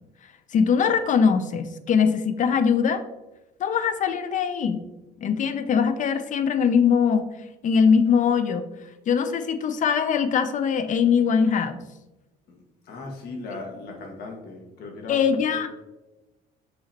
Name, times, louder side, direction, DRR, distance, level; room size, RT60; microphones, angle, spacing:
voice 1, 0.5-3.0 3.6-4.8 5.2-7.3 7.6-8.6 9.1-11.8 15.1-15.9, left 6 dB, 50° left, 11 dB, 0.6 m, -22 dB
voice 2, 12.5-15.6, left 3 dB, 70° left, 1 dB, 1.7 m, -38 dB
6.3 x 5.7 x 2.9 m, 1.0 s
cardioid pair, 110°, 17 cm